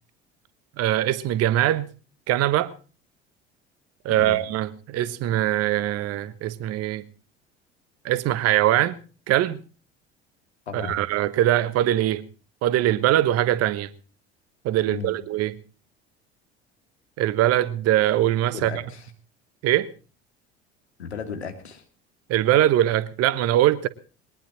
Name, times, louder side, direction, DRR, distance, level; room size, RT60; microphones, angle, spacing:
voice 1, 0.8-1.9 2.3-2.7 4.0-7.0 8.0-9.0 9.3-9.6 10.7-12.2 12.6-13.9 14.6-15.6 17.2-18.7 19.6-19.9 22.3-23.9, right 13 dB, 50° right, 1.2 m, -22 dB
voice 2, 4.1-4.5 10.7-11.0 14.9-15.1 18.5-19.1 21.0-21.8, left 6 dB, 80° left, 2.6 m, -35 dB
21.5 x 20.0 x 3.1 m
figure-of-eight pair, 65°, 32 cm